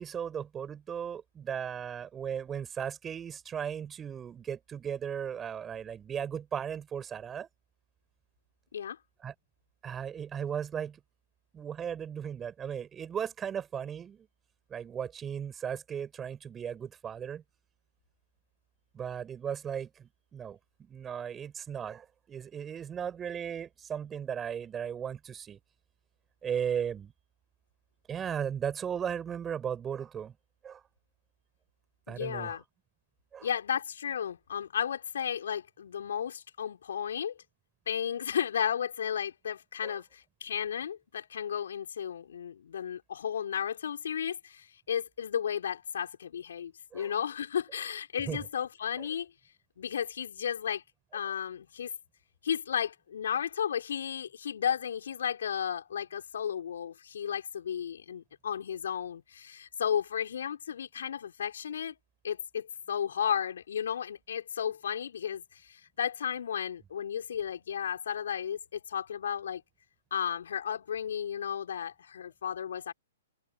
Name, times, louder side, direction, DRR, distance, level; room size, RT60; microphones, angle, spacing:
voice 1, 0.0-7.5 9.2-9.3 9.8-11.0 11.5-14.3 14.7-17.4 18.9-25.6 26.4-27.1 28.1-30.3 30.6-30.8 32.1-32.6 33.3-33.5 39.8-40.0 46.9-47.1 48.3-48.5 49.0-49.1, right 8 dB, 20° right, 7.0 m, -36 dB
voice 2, 32.1-32.6 33.4-37.4 37.9-49.3 49.8-50.8 51.1-51.9 52.4-61.9 62.2-69.6 70.1-72.9, left 8 dB, 65° left, 5.7 m, -34 dB
figure-of-eight pair, 120°, 0 cm